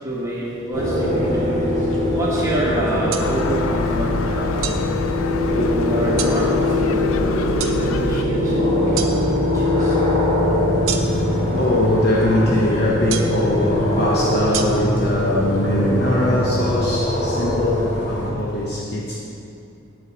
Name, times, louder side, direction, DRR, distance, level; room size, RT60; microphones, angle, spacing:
voice 1, 0.0-4.9 5.5-10.0, right 1 dB, 15° right, -6 dB, 1.2 m, -28 dB
sound 1, 0.7-18.3, left 1 dB, 35° left, 1.9 m, -21 dB
sound 2, 3.1-3.3 4.6-4.8 6.2-6.4 7.6-7.8 9.0-9.1 10.9-11.3 13.1-13.4 14.5-14.6, right 8 dB, 75° right, 0.7 m, -27 dB
Gull seagull, 3.2-8.2, left 5 dB, 75° left, 0.4 m, -29 dB
voice 2, 10.9-19.2, left 1 dB, 50° left, -3 dB, 0.9 m, -22 dB
9.7 x 8.0 x 4.1 m, 2.6 s
head